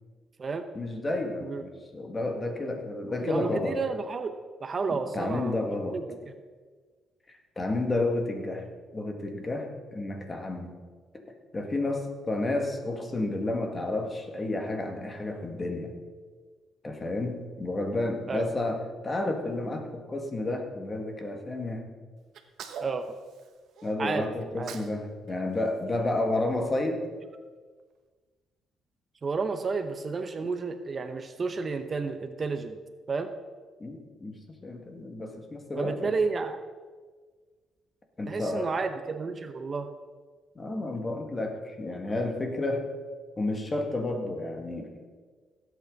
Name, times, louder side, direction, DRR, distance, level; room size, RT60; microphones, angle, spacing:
voice 1, 0.7-3.8 4.9-6.0 7.3-8.7 8.9-10.7 11.1-11.3 11.5-16.0 16.8-21.8 23.8-27.0 33.8-36.1 38.2-38.7 40.6-42.9 43.4-44.9, left 2 dB, 30° left, 3 dB, 2.0 m, -31 dB
voice 2, 3.2-6.0 18.3-18.5 22.8-23.2 24.0-24.3 24.6-24.7 29.2-32.8 33.1-33.3 35.8-36.6 38.3-39.9, right 4 dB, 40° right, 8 dB, 0.8 m, -31 dB
Sneeze, 22.3-23.9 24.4-25.0 25.3-26.7, right 7 dB, 75° right, 1.1 m, -45 dB
17.5 x 8.3 x 4.0 m, 1.5 s
cardioid pair, 90°, 0 cm